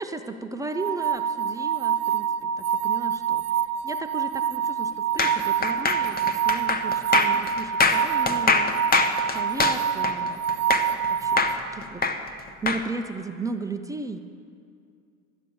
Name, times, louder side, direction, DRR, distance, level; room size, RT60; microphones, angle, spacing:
voice 1, 0.0-8.8 9.3-10.5 10.9-11.5 11.7-14.2, right 3 dB, 10° right, 7 dB, 0.5 m, -35 dB
sound 1, 0.7-11.6, right 8 dB, 85° right, 0.7 m, -26 dB
sound 2, 5.2-11.1 11.4-12.8, left 4 dB, 20° left, 0.9 m, -23 dB
12.5 x 9.1 x 6.9 m, 2.3 s
hypercardioid pair, 85°, 44 cm